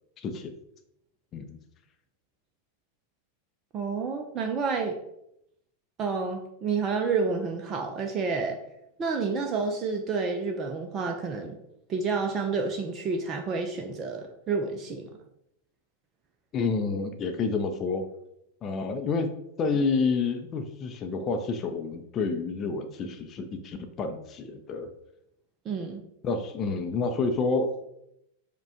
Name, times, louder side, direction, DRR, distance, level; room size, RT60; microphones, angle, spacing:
voice 1, 0.2-0.5 1.3-1.6 16.5-18.0 18.6-19.3 19.6-24.9 26.2-27.7, left 4 dB, 30° left, 5 dB, 0.5 m, -29 dB
voice 2, 3.7-5.0 6.0-8.6 9.0-11.6 11.9-15.1 25.7-26.0, right 4 dB, 30° right, 4 dB, 0.5 m, -29 dB
4.8 x 2.2 x 4.8 m, 0.79 s
figure-of-eight pair, 90°, 0 cm